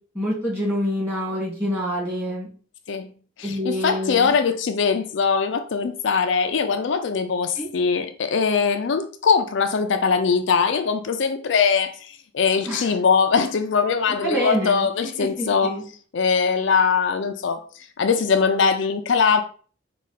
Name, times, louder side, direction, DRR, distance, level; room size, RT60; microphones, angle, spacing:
voice 1, 0.1-2.5 3.4-4.3 7.6-7.7 12.7-12.9 14.2-15.8, equal, 10° right, 2.0 m, -27 dB
voice 2, 3.4-15.7 16.1-17.6 18.0-19.4, left 5 dB, 70° left, 0.4 m, -21 dB
4.9 x 2.4 x 4.1 m
head